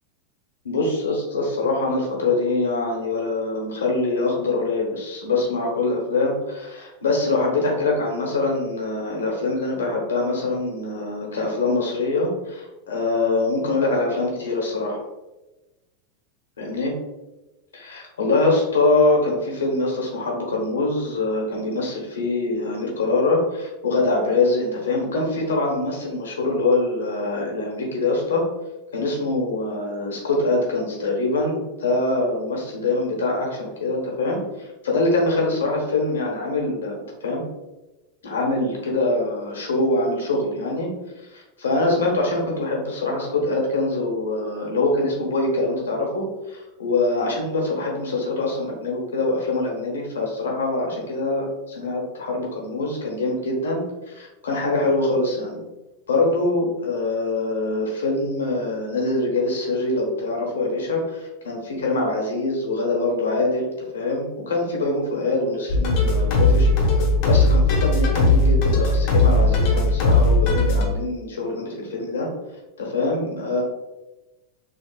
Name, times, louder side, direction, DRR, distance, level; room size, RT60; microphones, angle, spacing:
voice 1, 0.6-15.0 16.6-16.9 17.7-28.4 28.9-37.4 38.2-40.9 41.3-55.6 56.1-66.7 67.2-72.3 72.8-73.6, left 2 dB, 85° left, -1 dB, 1.0 m, -24 dB
sound 1, 65.7-70.9, left 2 dB, 50° left, 0.9 m, -18 dB
4.2 x 2.3 x 2.3 m, 1.0 s
hypercardioid pair, 105°, 0 cm